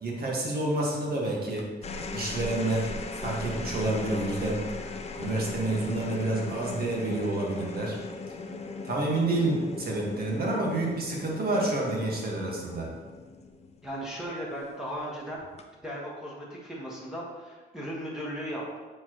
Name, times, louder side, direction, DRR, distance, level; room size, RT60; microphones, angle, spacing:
voice 1, 0.0-1.7 2.1-2.9 3.2-4.7 5.2-8.0 8.8-12.9, right 2 dB, 50° right, -2 dB, 1.6 m, -29 dB
sound 1, 1.6-14.2 15.4-15.9, left 3 dB, 35° left, 0.6 m, -38 dB
voice 2, 13.8-15.4 15.8-18.8, equal, 5° right, -6 dB, 1.4 m, -36 dB
7.3 x 4.4 x 3.0 m, 1.3 s
cardioid pair, 90°, 20 cm